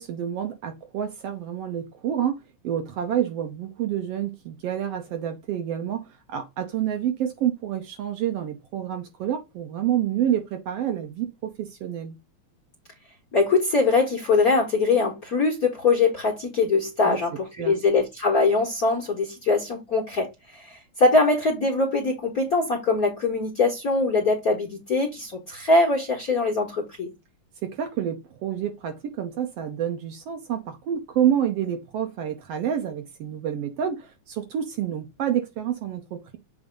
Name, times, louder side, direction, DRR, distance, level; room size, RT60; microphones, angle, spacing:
voice 1, 0.0-12.1 17.0-17.2 17.6-17.8 27.6-36.4, right 10 dB, 70° right, 1.7 m, -28 dB
voice 2, 13.3-27.1, left 3 dB, 45° left, 1.2 m, -22 dB
7.1 x 2.7 x 5.2 m
omnidirectional pair, 3.3 m